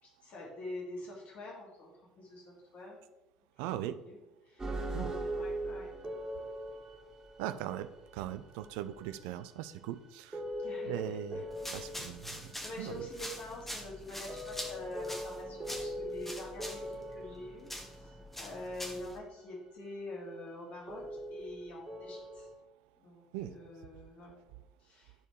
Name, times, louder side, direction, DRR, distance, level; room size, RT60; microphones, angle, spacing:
voice 1, 0.0-3.0 3.6-4.2 4.4-5.9 10.6-11.4 12.6-22.5 23.0-24.4 24.8-25.1, left 1 dB, 50° left, -3 dB, 2.7 m, -46 dB
voice 2, 3.6-4.0 4.9-5.1 7.4-10.4 10.9-11.4 11.7-12.5 12.8-13.1 23.3-23.5, right 12 dB, 60° right, 12 dB, 0.4 m, -39 dB
sound 1, 4.6-9.7 10.1-10.2 10.3-12.9 13.3-13.4 14.1-18.3 20.9-22.5, equal, 20° right, 2.1 m, -41 dB
sound 2, 11.5-19.2, equal, 5° left, 1.4 m, -45 dB
12.0 x 4.3 x 3.3 m, 1.0 s
figure-of-eight pair, 60°, 3 cm